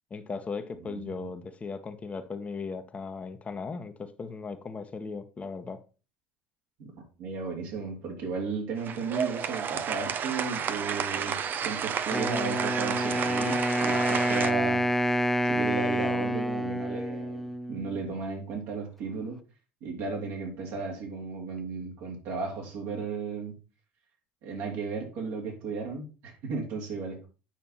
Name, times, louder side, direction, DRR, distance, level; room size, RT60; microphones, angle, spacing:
voice 1, 0.1-5.8, left 4 dB, 25° left, 7 dB, 1.1 m, -37 dB
voice 2, 0.8-1.3 6.8-6.9 7.2-14.8 15.4-19.4 19.8-23.5 24.4-27.3, right 4 dB, 60° right, 0 dB, 3.5 m, -35 dB
sound 1, 8.8-14.5, right 7 dB, 40° right, 0.8 m, -31 dB
Wind instrument woodwind instrument, 12.1-18.1, equal, 5° left, 0.6 m, -28 dB
9.0 x 5.8 x 4.3 m, 0.34 s
hypercardioid pair, 70°, 5 cm